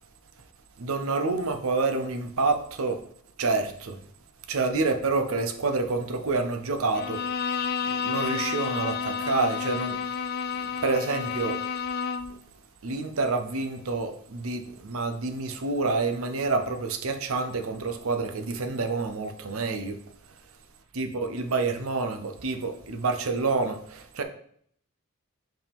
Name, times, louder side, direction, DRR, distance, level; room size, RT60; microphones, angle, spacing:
voice 1, 0.8-3.0 3.4-4.0 4.5-7.2 7.8-10.2 10.8-11.6 12.8-20.0 20.9-24.2, right 3 dB, 70° right, 0.7 m, -28 dB
Bowed string instrument, 6.9-12.4, left 6 dB, 45° left, 0.3 m, -30 dB
5.6 x 4.8 x 3.5 m
head